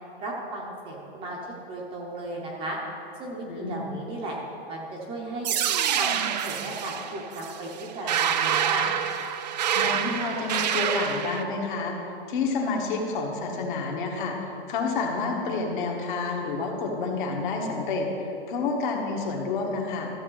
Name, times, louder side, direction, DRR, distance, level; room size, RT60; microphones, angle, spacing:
voice 1, 0.2-1.4 1.7-2.8 3.2-4.4 4.7-5.6 5.9-6.1 6.4-8.9, right 2 dB, 15° right, -2 dB, 0.8 m, -35 dB
voice 2, 3.4-3.9 9.7-12.0 12.3-14.4 14.7-18.1 18.5-20.1, left 4 dB, 50° left, 1 dB, 1.5 m, -29 dB
sound 1, 5.4-11.4, right 9 dB, 40° right, 0.5 m, -27 dB
13.5 x 7.1 x 3.9 m, 2.8 s
hypercardioid pair, 165°, 32 cm